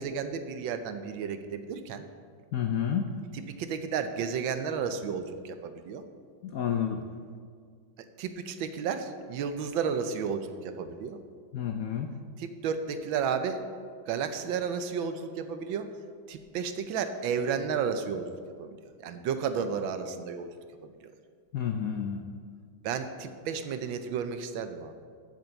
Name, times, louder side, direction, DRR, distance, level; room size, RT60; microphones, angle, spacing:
voice 1, 0.0-2.1 3.6-6.0 8.2-11.2 12.4-13.6 14.1-15.9 16.3-18.3 18.6-20.5 21.0-21.1 22.8-24.9, right 6 dB, 75° right, 9 dB, 1.4 m, -32 dB
voice 2, 2.5-3.1 6.4-7.0 11.5-12.1 21.5-22.2, left 8 dB, 85° left, 5 dB, 0.7 m, -30 dB
7.8 x 7.4 x 8.0 m, 2.1 s
omnidirectional pair, 2.2 m